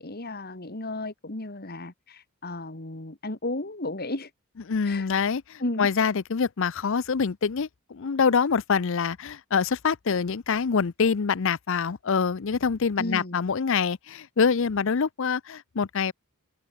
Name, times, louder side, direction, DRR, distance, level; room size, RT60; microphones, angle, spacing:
voice 1, 0.0-4.3 4.8-5.1 5.6-5.9 13.0-13.4, left 2 dB, 45° left, 2.1 m, -34 dB
voice 2, 4.7-16.1, left 5 dB, 60° left, 0.6 m, -25 dB
open air
head